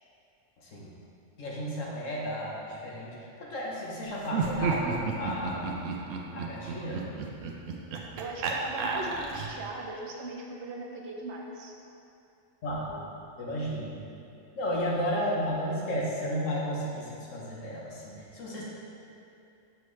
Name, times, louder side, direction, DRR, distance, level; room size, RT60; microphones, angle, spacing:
voice 1, 0.6-0.9 1.4-5.8 6.3-7.0 12.6-13.0 13.4-14.0 14.5-18.6, equal, 80° left, -4 dB, 1.5 m, -33 dB
Laughter, 4.2-9.7, right 4 dB, 85° right, 1.0 m, -33 dB
voice 2, 8.2-11.7, right 2 dB, 65° right, 0 dB, 1.0 m, -38 dB
6.8 x 6.1 x 3.2 m, 2.6 s
omnidirectional pair, 1.3 m